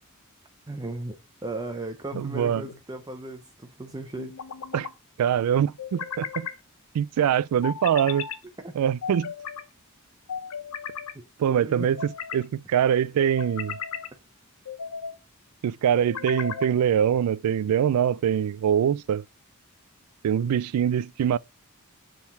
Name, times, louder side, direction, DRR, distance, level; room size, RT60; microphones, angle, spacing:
voice 1, 0.7-4.4 8.6-8.8 11.1-11.9, right 2 dB, 20° right, 0.5 m, -36 dB
sound 1, 2.1-2.8 4.2-4.9 5.8-6.6 7.6-8.4 9.0-9.6 10.3-11.1 11.8-12.4 13.2-14.1 14.7-15.2 15.9-16.7, left 7 dB, 85° left, 0.8 m, -36 dB
voice 2, 2.2-2.6 4.7-4.9 5.2-6.5 6.9-8.3 8.8-9.3 11.4-13.8 15.6-19.2 20.2-21.4, right 9 dB, 90° right, 0.3 m, -24 dB
7.0 x 3.8 x 4.0 m
head